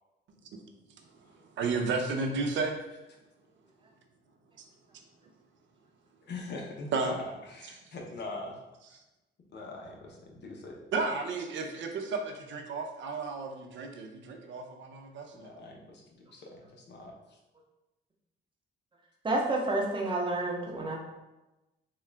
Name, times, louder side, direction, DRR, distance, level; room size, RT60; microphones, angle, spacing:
voice 1, 1.6-2.8 6.9-7.1 10.9-15.5, right 4 dB, 70° right, 4 dB, 0.6 m, -32 dB
voice 2, 6.3-8.6 9.5-10.8 15.4-17.1, left 2 dB, 60° left, 0 dB, 0.8 m, -42 dB
voice 3, 19.2-21.0, right 2 dB, 25° right, -1 dB, 0.8 m, -29 dB
3.7 x 2.3 x 3.3 m, 1.0 s
cardioid pair, 90°, 20 cm